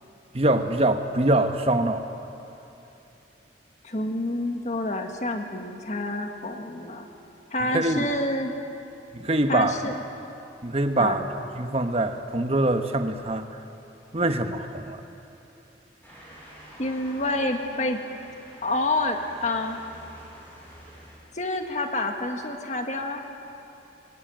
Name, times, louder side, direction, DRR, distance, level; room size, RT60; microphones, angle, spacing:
voice 1, 0.3-2.0 7.7-8.0 9.1-9.8 10.6-11.2 11.6-13.5 14.1-15.0, right 2 dB, 30° right, 7 dB, 1.1 m, -24 dB
voice 2, 3.8-7.1 7.5-8.5 9.5-10.0 11.0-11.3 16.8-18.0 18.6-19.8 21.3-23.2, left 2 dB, 40° left, 4 dB, 1.7 m, -28 dB
Motor vehicle (road) / Siren, 16.0-21.2, equal, 10° left, 6.7 m, -48 dB
23.0 x 18.0 x 9.0 m, 2.9 s
head